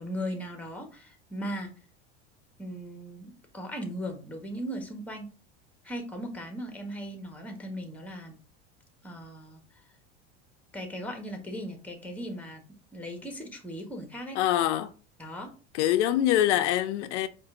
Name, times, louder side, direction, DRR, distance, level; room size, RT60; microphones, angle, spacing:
voice 1, 0.0-1.7 2.6-5.3 5.8-8.3 9.0-9.6 10.7-12.6 12.9-14.4 15.2-15.5, equal, 5° left, 1.2 m, -38 dB
voice 2, 14.3-14.9 15.7-17.3, left 12 dB, 80° left, 0.5 m, -24 dB
4.8 x 2.6 x 3.6 m
supercardioid pair, 105°, 34 cm